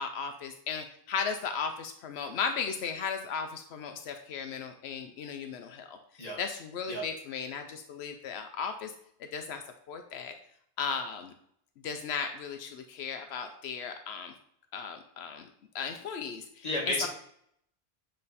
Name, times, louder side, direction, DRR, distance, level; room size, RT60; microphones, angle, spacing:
voice 1, 0.0-8.9 9.3-9.6 9.9-10.3 10.8-11.3 11.8-14.3 14.7-15.5 15.7-17.1, left 6 dB, 85° left, 6 dB, 0.9 m, -36 dB
voice 2, 16.6-17.1, left 1 dB, 40° left, -2 dB, 1.5 m, -31 dB
7.6 x 3.3 x 4.1 m, 0.70 s
omnidirectional pair, 1.1 m